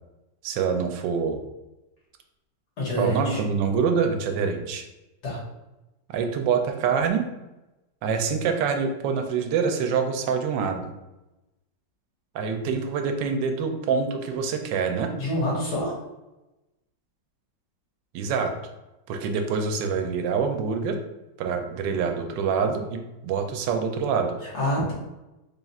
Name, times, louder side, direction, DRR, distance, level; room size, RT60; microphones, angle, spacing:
voice 1, 0.4-1.4 3.0-4.8 6.1-7.2 8.0-10.9 12.3-15.1 18.1-18.5 19.1-21.0 21.4-24.4, right 6 dB, 85° right, 5 dB, 1.3 m, -25 dB
voice 2, 2.8-3.4 5.2-5.4 15.2-15.9 24.4-24.9, left 1 dB, 65° left, -6 dB, 1.8 m, -26 dB
3.6 x 2.4 x 4.0 m, 0.99 s
omnidirectional pair, 1.9 m